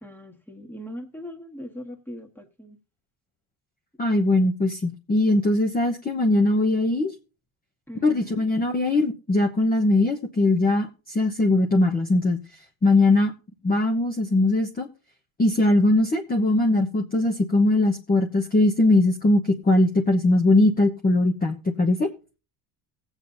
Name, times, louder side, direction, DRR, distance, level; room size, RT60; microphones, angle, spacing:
voice 1, 0.0-2.8 7.9-8.5, equal, 5° left, 3 dB, 1.6 m, -40 dB
voice 2, 4.0-7.1 8.0-12.4 12.8-13.3 13.6-14.9 15.4-22.1, left 2 dB, 20° left, 2 dB, 1.0 m, -21 dB
19.0 x 8.1 x 2.7 m, 0.33 s
cardioid pair, 110°, 44 cm